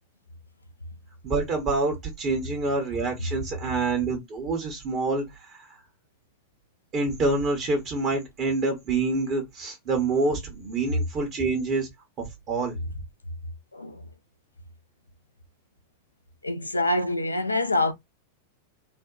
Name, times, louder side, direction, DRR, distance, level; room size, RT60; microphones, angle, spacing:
voice 1, 1.2-5.8 6.9-11.9 12.2-12.7, right 3 dB, 35° right, 0.8 m, -27 dB
voice 2, 13.7-14.1 16.4-17.9, left 2 dB, 80° left, 0.3 m, -25 dB
2.6 x 2.1 x 2.2 m
figure-of-eight pair, 90°, 0 cm